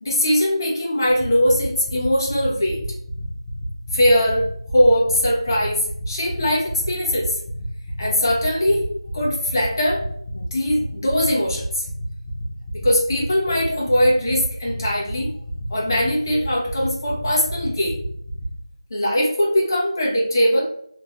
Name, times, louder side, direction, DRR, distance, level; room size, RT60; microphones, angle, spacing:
voice 1, 0.0-2.8 3.9-7.4 8.0-8.8 9.1-10.0 10.3-11.9 12.7-15.3 15.7-17.9 18.9-20.6, equal, 40° left, -4 dB, 1.0 m, -20 dB
sound 1, 1.1-18.5, left 1 dB, 20° left, 0.6 m, -33 dB
3.2 x 2.9 x 2.4 m, 0.69 s
figure-of-eight pair, 170°, 3 cm